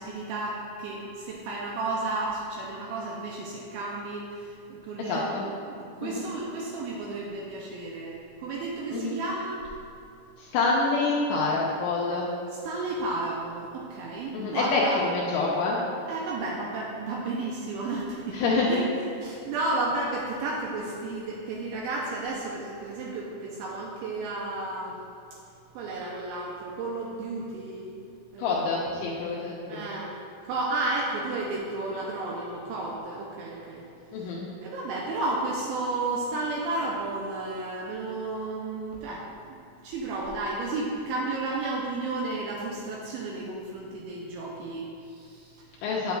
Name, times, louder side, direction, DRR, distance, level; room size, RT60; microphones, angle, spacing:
voice 1, 0.0-9.7 12.6-15.0 16.1-18.9 19.2-25.0 25.7-27.9 28.3-28.6 29.7-30.1 30.4-33.9 34.2-34.3 34.6-39.6 39.8-45.6, right 2 dB, 90° right, -3 dB, 2.7 m, -32 dB
voice 2, 5.1-5.4 6.0-6.2 8.9-9.2 10.4-12.3 14.3-15.8 18.3-18.8 28.4-29.9 34.1-34.5 45.8-46.1, left 3 dB, 85° left, -4 dB, 2.7 m, -27 dB
8.7 x 8.0 x 2.4 m, 2.5 s
omnidirectional pair, 5.9 m